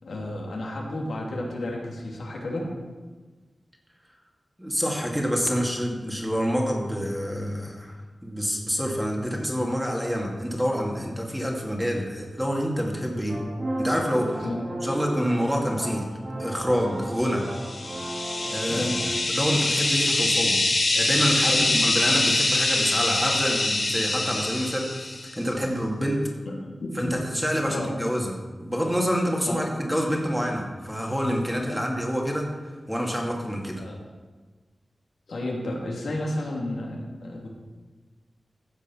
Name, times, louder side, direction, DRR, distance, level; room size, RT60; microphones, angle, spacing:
voice 1, 0.0-2.7 13.3-13.4 14.4-14.7 18.7-18.9 21.5-21.7 26.5-27.1 27.6-27.9 29.5-29.7 31.7-31.8 33.8-34.0 35.3-37.5, left 1 dB, 80° left, -2 dB, 3.0 m, -32 dB
voice 2, 4.6-13.4 13.8-14.5 14.8-16.1 16.4-17.5 18.5-20.6 20.9-26.3 26.9-33.8, equal, ahead, 0 dB, 2.4 m, -27 dB
sound 1, 13.3-19.1, right 1 dB, 55° right, 3.8 m, -34 dB
sound 2, 17.5-25.3, left 2 dB, 55° left, 2.4 m, -24 dB
15.5 x 7.0 x 5.8 m, 1.3 s
wide cardioid pair, 65°, 0 cm